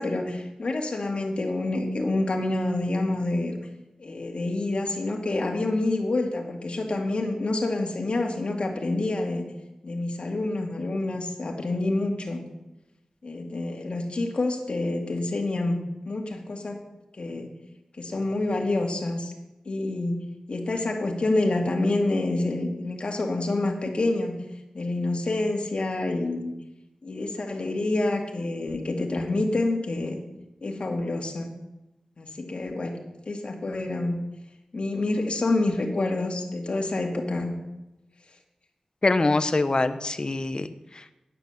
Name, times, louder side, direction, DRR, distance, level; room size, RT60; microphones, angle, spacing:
voice 1, 0.0-3.6 4.0-9.5 9.8-12.4 13.2-15.8 16.1-16.8 17.2-17.5 18.0-19.3 19.7-20.2 20.5-24.4 24.7-26.5 27.0-30.2 30.6-31.5 32.2-33.0 33.3-34.2 34.7-37.5, left 2 dB, 60° left, 1 dB, 2.2 m, -27 dB
voice 2, 39.0-41.1, left 2 dB, 40° left, 11 dB, 0.9 m, -24 dB
9.9 x 9.3 x 7.0 m, 0.95 s
wide cardioid pair, 70°, 2 cm